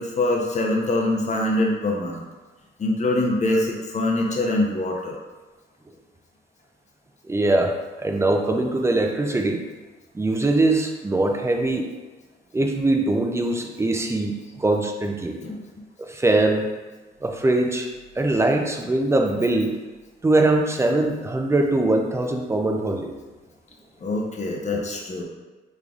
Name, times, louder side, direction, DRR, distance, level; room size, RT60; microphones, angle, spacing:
voice 1, 0.0-2.2 2.8-5.2 15.4-15.6 24.0-25.2, left 2 dB, 35° left, 0 dB, 0.7 m, -24 dB
voice 2, 7.2-9.6 10.1-11.8 12.5-15.4 16.0-16.7 17.2-17.9 18.2-19.7 20.2-23.1, right 2 dB, 15° right, 3 dB, 0.4 m, -22 dB
3.8 x 3.2 x 2.4 m, 1.2 s
cardioid pair, 90°, 20 cm